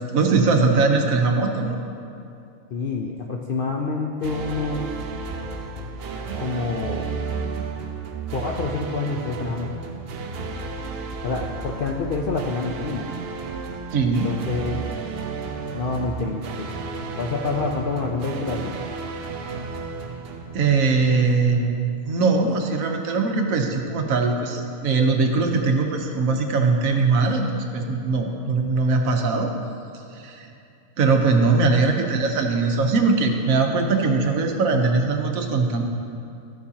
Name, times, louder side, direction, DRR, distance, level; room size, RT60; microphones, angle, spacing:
voice 1, 0.0-1.8 13.9-14.3 20.5-27.5 27.7-29.5 30.2-30.5 31.0-35.8, right 4 dB, 75° right, 3 dB, 1.2 m, -21 dB
voice 2, 2.7-4.8 6.4-7.1 8.3-9.7 11.2-13.1 14.0-14.8 15.7-16.7 17.2-18.7, left 4 dB, 65° left, 0 dB, 0.5 m, -27 dB
sound 1, 4.2-21.3, right 4 dB, 60° right, 0.7 m, -33 dB
13.0 x 7.1 x 2.8 m, 2.6 s
omnidirectional pair, 1.5 m